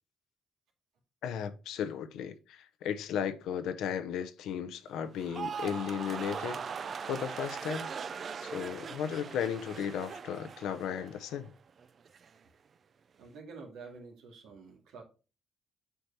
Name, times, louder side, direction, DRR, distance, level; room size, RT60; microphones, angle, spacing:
voice 1, 1.2-7.9 8.4-11.5, left 8 dB, 85° left, 0.7 m, -35 dB
sound 1, 5.1-11.5 11.8-12.3, right 6 dB, 50° right, 0.4 m, -40 dB
voice 2, 13.2-15.0, right 4 dB, 90° right, 2.1 m, -48 dB
7.9 x 4.5 x 2.8 m
cardioid pair, 90°, 0 cm